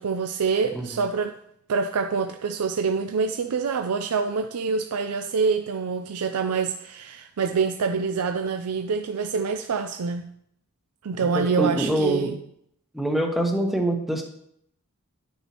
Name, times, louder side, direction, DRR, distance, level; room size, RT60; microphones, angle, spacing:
voice 1, 0.0-1.3 1.7-10.2 11.0-12.4, right 5 dB, 90° right, 7 dB, 0.5 m, -26 dB
voice 2, 11.3-12.3 12.9-14.2, right 1 dB, ahead, 1 dB, 1.0 m, -25 dB
11.0 x 7.1 x 2.9 m, 0.71 s
head